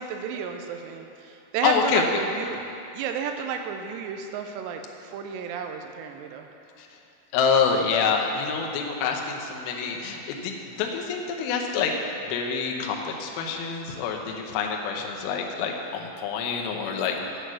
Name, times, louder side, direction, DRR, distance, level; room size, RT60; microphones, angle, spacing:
voice 1, 0.0-2.6 3.0-6.5, right 6 dB, 85° right, 5 dB, 2.6 m, -32 dB
voice 2, 1.6-2.0 6.8-6.9 7.3-12.0 12.3-17.2, left 6 dB, 80° left, 2 dB, 2.2 m, -26 dB
8.7 x 7.9 x 6.2 m, 2.7 s
omnidirectional pair, 5.5 m